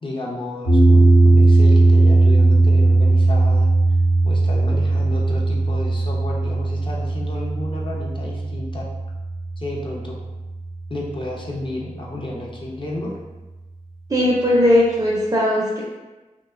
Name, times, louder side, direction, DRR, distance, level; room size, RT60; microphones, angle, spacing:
voice 1, 0.0-3.7 4.2-8.9 9.6-10.2 10.9-13.1, left 1 dB, 40° left, -3 dB, 0.6 m, -32 dB
sound 1, 0.6-10.9, right 2 dB, 75° left, 0.8 m, -17 dB
voice 2, 14.1-15.8, left 1 dB, 30° right, -6 dB, 0.5 m, -18 dB
2.8 x 2.2 x 2.3 m, 1.1 s
wide cardioid pair, 55°, 14 cm